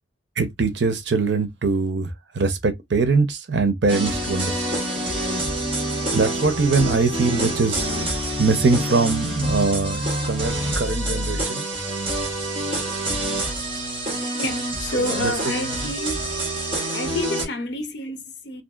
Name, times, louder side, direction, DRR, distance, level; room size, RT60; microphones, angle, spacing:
voice 1, 0.4-2.1 2.4-4.8 6.1-7.9 8.4-10.0 10.3-11.6, right 4 dB, 70° right, 0.7 m, -22 dB
sound 1, 3.9-17.4, right 1 dB, 30° right, 1.0 m, -26 dB
voice 2, 14.4-16.2 16.9-18.6, left 2 dB, 65° left, 0.6 m, -28 dB
2.7 x 2.5 x 2.3 m
head